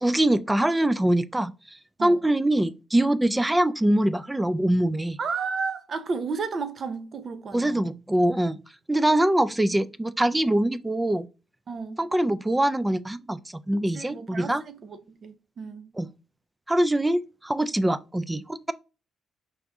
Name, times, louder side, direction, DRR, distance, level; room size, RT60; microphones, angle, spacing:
voice 1, 0.0-1.5 2.0-5.2 7.5-8.6 8.9-11.3 12.0-13.4 13.7-14.6 16.0-16.1 16.7-18.7, right 1 dB, 10° right, 0.3 m, -23 dB
voice 2, 5.2-7.9 11.7-12.0 13.7-15.9, right 5 dB, 50° right, 0.7 m, -33 dB
4.9 x 2.6 x 3.5 m
cardioid pair, 90°, 0 cm